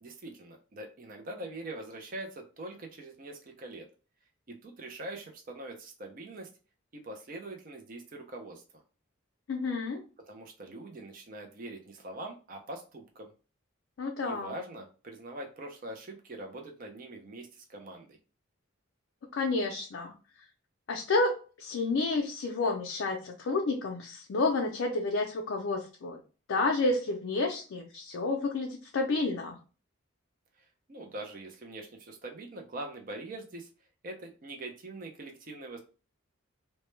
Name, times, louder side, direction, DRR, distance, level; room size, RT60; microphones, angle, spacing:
voice 1, 0.0-3.9 4.5-6.5 6.9-8.8 10.3-13.3 14.2-18.2 30.9-33.7 34.0-35.8, right 2 dB, 40° right, 3 dB, 0.4 m, -43 dB
voice 2, 9.5-10.0 14.0-14.6 19.3-20.1 20.9-26.2 26.5-29.6, left 3 dB, 65° left, 1 dB, 0.4 m, -30 dB
2.1 x 2.1 x 3.0 m, 0.35 s
head